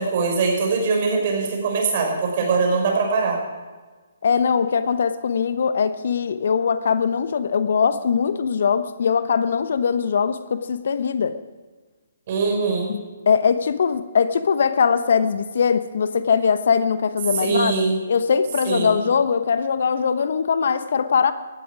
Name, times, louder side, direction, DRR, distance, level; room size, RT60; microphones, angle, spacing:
voice 1, 0.0-3.4 12.3-12.9 17.4-18.0 18.7-19.0, right 4 dB, 45° right, 1 dB, 5.4 m, -22 dB
voice 2, 4.2-11.4 12.9-17.8 18.1-21.3, left 6 dB, 55° left, 12 dB, 0.9 m, -21 dB
18.0 x 13.5 x 5.0 m, 1.3 s
figure-of-eight pair, 135°, 0 cm